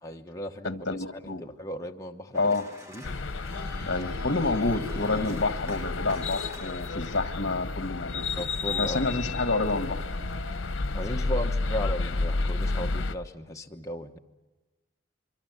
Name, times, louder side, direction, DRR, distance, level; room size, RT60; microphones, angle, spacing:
voice 1, 0.0-0.7 1.4-2.6 2.9-3.0 8.4-9.0 10.9-14.2, equal, 15° left, 2 dB, 1.1 m, -36 dB
voice 2, 0.6-1.4 2.3-2.6 3.8-8.3 8.8-10.0, left 3 dB, 65° left, 9 dB, 1.3 m, -28 dB
Organ, 2.3-13.1, equal, 15° right, 1.6 m, -47 dB
sound 1, 3.0-13.2, left 3 dB, 90° left, 0.8 m, -31 dB
26.0 x 24.0 x 7.9 m, 1.2 s
head